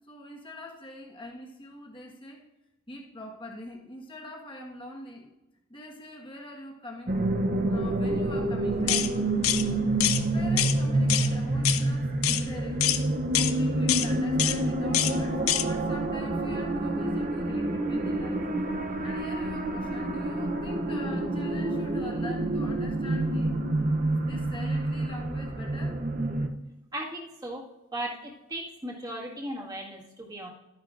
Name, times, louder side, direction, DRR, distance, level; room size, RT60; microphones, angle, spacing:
voice 1, 0.1-2.4 2.9-5.3 5.7-7.1 7.7-9.1 9.6-9.9 10.3-13.0 13.3-18.4 19.0-23.5 24.1-26.0, left 1 dB, 25° left, -1 dB, 1.4 m, -43 dB
sound 1, 7.1-26.5, right 2 dB, 40° right, 0.7 m, -28 dB
sound 2, 8.9-9.1 9.4-9.6 10.0-10.2 10.6-10.8 11.1-11.3 11.6-11.8 12.2-12.4 12.8-13.0 13.3-13.5 13.9-14.1 14.4-14.6 14.9-15.1 15.5-15.6, left 12 dB, 80° left, 0.6 m, -25 dB
voice 2, 26.9-27.6 27.9-30.5, right 1 dB, 20° right, -3 dB, 1.8 m, -37 dB
12.5 x 10.5 x 2.5 m, 0.99 s
head